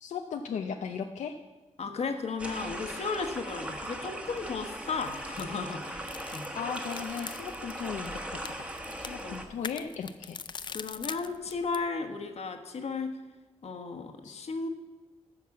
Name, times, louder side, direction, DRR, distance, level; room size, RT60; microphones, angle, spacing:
voice 1, 0.0-1.4 6.5-8.7 9.0-10.4 14.2-14.4, left 7 dB, 90° left, 5 dB, 0.6 m, -37 dB
voice 2, 1.8-6.5 9.2-9.4 10.7-13.2 13.6-14.7, left 4 dB, 65° left, 7 dB, 1.3 m, -35 dB
sound 1, 2.4-9.5, right 1 dB, 10° right, 1.3 m, -39 dB
sound 2, 4.9-11.9, left 6 dB, 40° left, 0.4 m, -44 dB
14.0 x 6.0 x 7.1 m, 1.2 s
wide cardioid pair, 115°, 12 cm